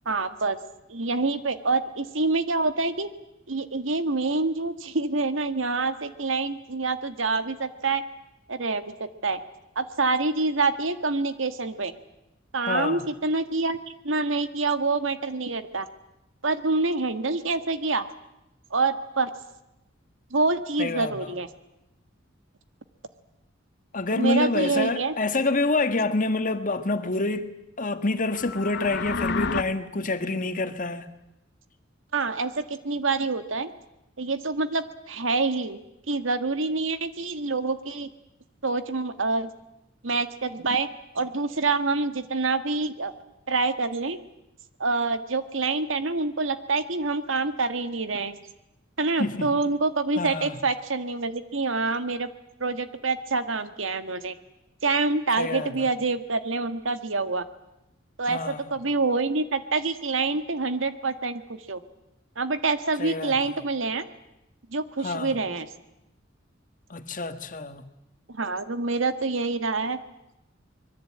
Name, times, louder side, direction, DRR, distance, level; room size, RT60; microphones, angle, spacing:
voice 1, 0.0-0.6 0.9-3.1 3.5-8.0 8.5-9.4 9.7-11.9 12.5-15.9 16.4-18.0 18.7-19.3 20.3-21.5 24.1-25.1 32.1-33.7 34.2-35.8 36.1-38.1 38.6-39.5 40.0-40.9 41.1-43.1 43.5-44.2 44.8-48.4 49.0-52.3 52.6-54.3 54.8-57.4 58.2-61.8 62.3-64.0 64.7-65.7 68.3-70.0, right 3 dB, 85° right, 1.7 m, -26 dB
voice 2, 12.7-13.1 20.8-21.3 23.9-27.5 27.8-31.1 49.2-49.5 50.2-50.6 55.4-55.9 58.3-58.6 63.0-63.4 65.0-65.4 66.9-67.9, left 2 dB, 45° left, 1.6 m, -27 dB
sound 1, 28.2-29.6, left 4 dB, 60° left, 1.1 m, -29 dB
25.0 x 22.0 x 8.7 m
head